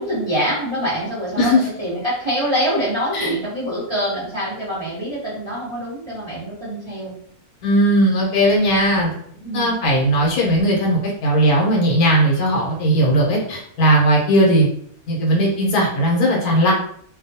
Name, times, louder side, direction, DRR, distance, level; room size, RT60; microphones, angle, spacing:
voice 1, 0.0-7.1 9.4-9.7, equal, 20° right, -8 dB, 0.9 m, -25 dB
voice 2, 7.6-14.7 15.1-16.7, right 1 dB, 90° left, -2 dB, 1.2 m, -17 dB
2.6 x 2.2 x 2.7 m, 0.64 s
omnidirectional pair, 1.5 m